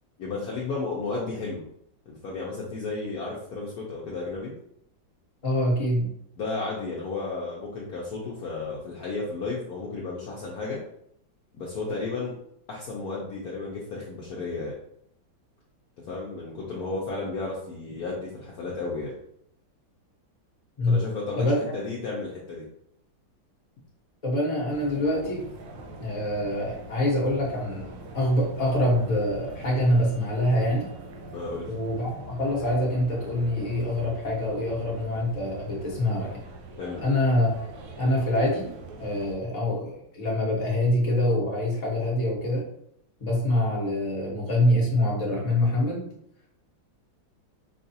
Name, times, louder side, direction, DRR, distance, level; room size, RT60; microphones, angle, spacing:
voice 1, 0.2-1.6 2.1-4.5 6.4-10.8 11.5-12.3 12.7-14.8 16.0-19.2 20.9-22.7 31.3-31.7 36.8-37.0, left 3 dB, 65° left, -4 dB, 1.0 m, -33 dB
voice 2, 5.4-6.1 20.8-21.0 21.4-21.7 24.2-25.4 26.0-30.9 31.6-36.4 37.0-37.6 38.0-38.7 39.0-42.6 43.2-46.1, left 1 dB, 25° left, -4 dB, 0.8 m, -25 dB
sound 1, 24.7-39.4, right 2 dB, 80° right, 1.3 m, -43 dB
4.7 x 2.4 x 2.7 m, 0.73 s
omnidirectional pair, 2.1 m